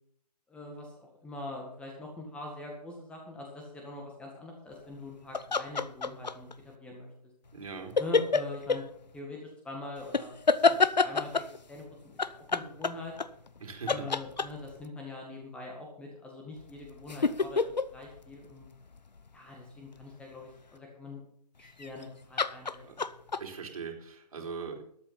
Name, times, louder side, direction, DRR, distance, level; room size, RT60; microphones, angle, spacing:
voice 1, 0.5-7.1 8.0-8.8 9.1-10.3 10.6-12.2 12.5-13.1 13.8-17.6 17.9-18.7 19.3-21.2 21.6-22.8, left 2 dB, 5° left, 0 dB, 1.8 m, -43 dB
sound 1, 5.3-6.5 8.0-8.8 10.1-11.6 12.2-13.6 13.9-14.8 16.6-19.3 21.7-22.0 22.4-23.4, left 4 dB, 90° left, 0.8 m, -27 dB
voice 2, 7.5-7.9 13.6-14.0 22.8-22.9 23.4-24.8, right 5 dB, 60° right, 1 dB, 3.7 m, -40 dB
13.0 x 8.8 x 5.8 m, 0.68 s
figure-of-eight pair, 150°, 21 cm